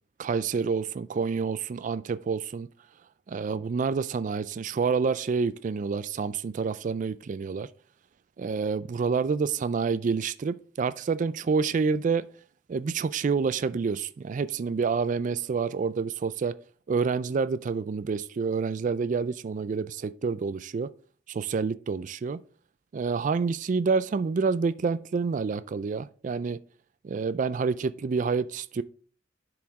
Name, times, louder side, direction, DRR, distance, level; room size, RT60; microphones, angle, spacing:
voice 1, 0.2-2.7 3.3-7.7 8.4-12.3 12.7-16.6 16.9-20.9 21.3-22.4 22.9-26.6 27.0-28.8, right 5 dB, 40° right, 0.3 m, -28 dB
10.5 x 4.9 x 3.6 m
head